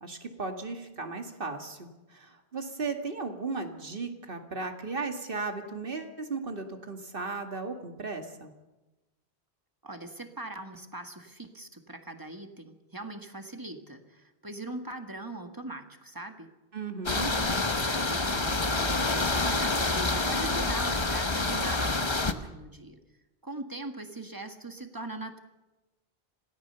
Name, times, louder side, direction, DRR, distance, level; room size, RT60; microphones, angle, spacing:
voice 1, 0.0-8.5 16.7-17.3, right 4 dB, 55° right, 5 dB, 2.2 m, -36 dB
voice 2, 9.8-16.5 17.3-17.6 17.9-23.0 23.4-25.4, right 2 dB, 20° right, 6 dB, 1.8 m, -41 dB
sound 1, 17.1-22.3, left 3 dB, 25° left, 1.1 m, -27 dB
26.5 x 18.0 x 6.8 m, 1.1 s
omnidirectional pair, 1.1 m